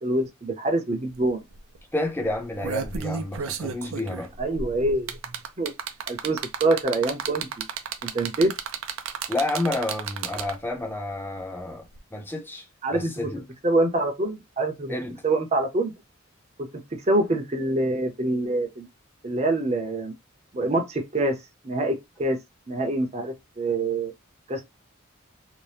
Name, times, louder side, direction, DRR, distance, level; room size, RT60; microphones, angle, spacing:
voice 1, 0.0-1.4 4.4-5.2 5.6-5.7 6.1-7.7 8.0-8.5 12.8-13.3 13.6-14.9 15.2-15.9 16.6-18.9 19.2-20.1 20.5-21.4 21.6-22.4 22.7-24.1 24.5-24.6, right 2 dB, 35° right, 0.6 m, -25 dB
sound 1, 1.1-1.2 1.5-1.8 2.3-10.7 11.9-12.0, right 6 dB, 80° right, 0.5 m, -32 dB
voice 2, 1.9-4.3 9.3-11.8 12.1-12.6 12.9-13.4 14.9-15.2, left 2 dB, 10° left, 0.7 m, -30 dB
2.7 x 2.1 x 3.3 m
head